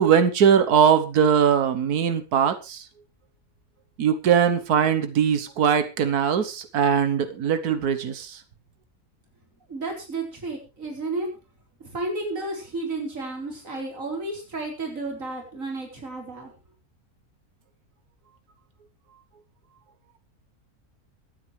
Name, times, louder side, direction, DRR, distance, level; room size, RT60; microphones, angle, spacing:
voice 1, 0.0-2.8 4.0-8.4, right 7 dB, 90° right, 10 dB, 1.6 m, -21 dB
voice 2, 9.7-11.3 11.8-16.5, right 2 dB, 60° right, 1 dB, 4.5 m, -32 dB
24.0 x 8.9 x 3.3 m, 0.28 s
omnidirectional pair, 1.6 m